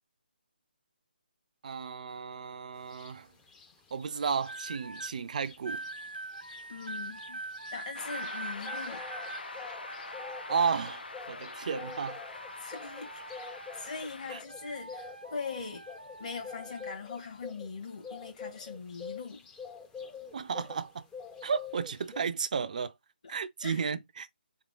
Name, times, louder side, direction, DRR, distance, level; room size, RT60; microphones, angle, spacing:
voice 1, 1.6-3.3 3.9-5.8 10.5-12.2 14.3-14.4 20.3-21.0 21.4-22.9 23.3-24.3, right 6 dB, 50° right, 0.4 m, -33 dB
sound 1, 2.9-3.1 3.5-5.1 5.4-5.6 5.8-20.9 21.1-22.2, left 5 dB, 10° left, 0.5 m, -46 dB
sound 2, 4.4-5.1 5.7-11.2 11.6-14.2 14.5-17.0 17.8-18.1, right 2 dB, 90° right, 1.0 m, -44 dB
voice 2, 6.7-7.4 7.7-9.1 12.3-15.9 16.2-19.5 23.6-23.8, left 5 dB, 45° left, 1.4 m, -41 dB
sound 3, 7.9-14.4, left 3 dB, 75° left, 0.6 m, -44 dB
3.6 x 3.0 x 3.7 m
figure-of-eight pair, 150°, 5 cm